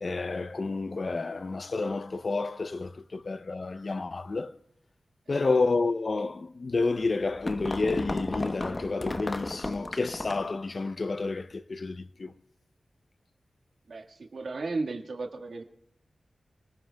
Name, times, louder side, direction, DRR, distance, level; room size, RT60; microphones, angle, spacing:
voice 1, 0.0-4.6 5.3-12.3, left 3 dB, 45° left, 0.5 m, -30 dB
sound 1, 7.2-10.6, left 2 dB, 30° left, 0.9 m, -34 dB
voice 2, 13.9-15.6, right 3 dB, 65° right, 1.6 m, -35 dB
29.0 x 20.0 x 2.2 m
wide cardioid pair, 115°, 0 cm